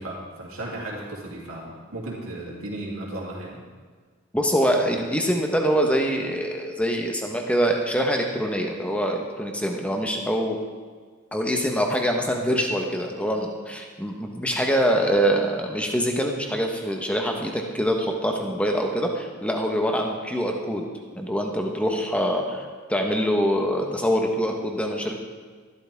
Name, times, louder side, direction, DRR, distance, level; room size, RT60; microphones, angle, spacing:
voice 1, 0.0-3.6, right 1 dB, 90° right, -4 dB, 3.1 m, -35 dB
voice 2, 4.3-10.6 11.3-20.9 21.1-22.6 22.9-25.2, equal, 5° left, 2 dB, 1.3 m, -24 dB
14.0 x 12.0 x 3.6 m, 1.6 s
head